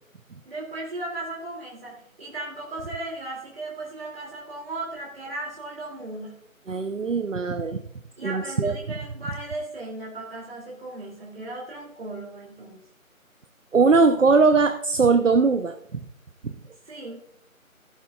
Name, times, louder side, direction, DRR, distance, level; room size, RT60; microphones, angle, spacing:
voice 1, 0.4-6.3 8.2-12.8 16.9-17.2, right 2 dB, 45° right, -3 dB, 2.9 m, -36 dB
voice 2, 6.7-7.8 8.2-8.7 13.7-16.0 16.4-16.5, right 4 dB, 60° right, 8 dB, 0.9 m, -20 dB
14.5 x 12.0 x 2.4 m, 0.68 s
figure-of-eight pair, 165°, 42 cm